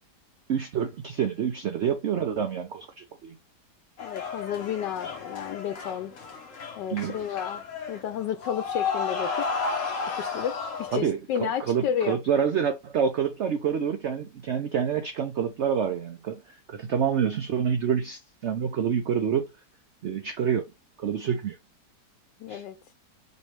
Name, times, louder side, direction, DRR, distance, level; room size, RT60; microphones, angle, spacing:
voice 1, 0.5-3.4 6.9-7.4 10.9-19.5 20.0-20.7 21.0-21.6 22.5-22.6, right 7 dB, 70° right, 0.6 m, -27 dB
voice 2, 4.0-6.2 6.8-9.5 10.2-12.2 22.4-22.8, left 9 dB, 90° left, 1.2 m, -32 dB
sound 1, 4.0-11.0, left 5 dB, 55° left, 1.1 m, -33 dB
5.1 x 3.0 x 3.1 m
omnidirectional pair, 1.8 m